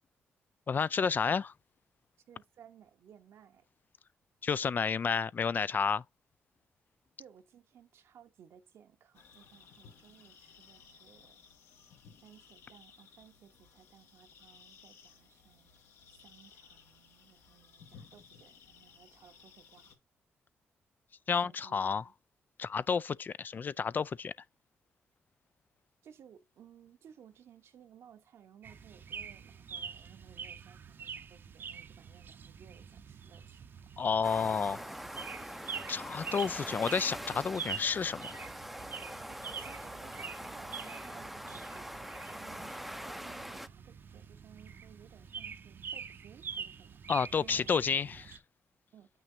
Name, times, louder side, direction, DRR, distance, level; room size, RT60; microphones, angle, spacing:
voice 1, 0.7-1.5 4.4-6.0 21.3-22.0 22.6-24.3 34.0-34.8 35.9-38.5 47.1-48.2, left 6 dB, 45° left, 0.4 m, -30 dB
voice 2, 2.3-3.7 7.2-11.4 12.2-19.9 21.4-22.1 26.0-33.7 39.3-47.0 47.4-48.3 48.9-49.1, right 9 dB, 75° right, 1.2 m, -59 dB
sound 1, 9.1-20.0, left 6 dB, 85° left, 2.0 m, -58 dB
sound 2, 28.6-48.4, right 6 dB, 55° right, 0.8 m, -45 dB
sound 3, 34.2-43.7, equal, ahead, 0.6 m, -43 dB
8.0 x 6.1 x 2.8 m
cardioid pair, 80°, 4 cm